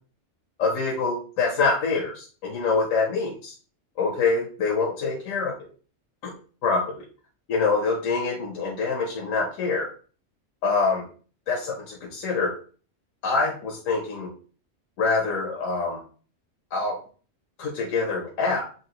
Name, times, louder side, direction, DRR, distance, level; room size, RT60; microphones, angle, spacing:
voice 1, 0.6-3.5 4.0-5.5 6.6-7.0 7.5-9.9 10.6-11.1 11.5-12.5 13.2-14.3 15.0-16.0 16.7-17.0 17.6-18.6, left 4 dB, 80° left, 0 dB, 1.2 m, -25 dB
6.0 x 2.7 x 2.9 m, 0.40 s
omnidirectional pair, 1.3 m